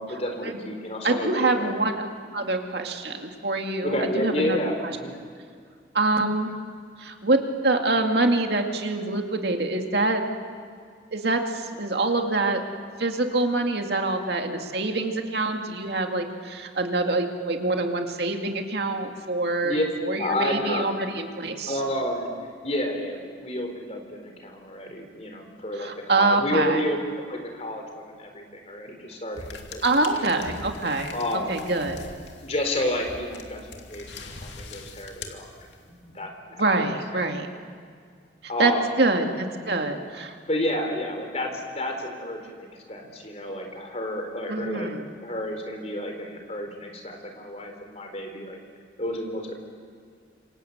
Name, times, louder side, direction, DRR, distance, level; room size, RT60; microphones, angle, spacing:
voice 1, 0.0-1.7 3.8-5.1 19.6-19.8 20.1-20.9 21.7-22.3 22.6-27.0 27.3-30.4 31.1-31.6 32.4-35.5 35.9-36.8 37.1-37.3 38.5-38.9 40.5-44.9 45.2-48.6 49.0-49.5, left 1 dB, 35° left, 4 dB, 4.1 m, -30 dB
voice 2, 1.0-1.9 2.3-4.6 4.8-4.9 5.9-6.5 7.0-10.2 11.1-12.6 13.0-21.8 25.7-26.8 29.8-31.1 31.5-32.0 36.6-37.5 38.4-38.7 39.0-40.3 44.5-45.0, right 2 dB, 60° right, 3 dB, 2.4 m, -25 dB
sound 1, 29.4-36.0, left 3 dB, 70° left, 2.6 m, -42 dB
27.0 x 26.0 x 8.1 m, 2.1 s
head